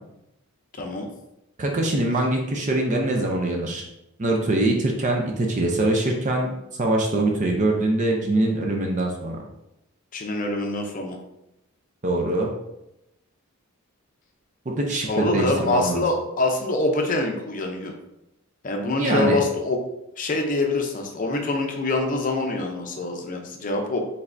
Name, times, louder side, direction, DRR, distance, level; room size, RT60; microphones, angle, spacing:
voice 1, 0.8-1.1 10.1-11.2 15.1-17.9 18.6-19.8 20.2-24.0, left 2 dB, 40° left, 3 dB, 0.6 m, -25 dB
voice 2, 1.6-3.8 4.2-6.5 6.8-9.4 12.0-12.5 14.7-16.0 18.9-19.4, right 2 dB, 35° right, 0 dB, 0.5 m, -23 dB
5.1 x 3.3 x 2.6 m, 0.87 s
head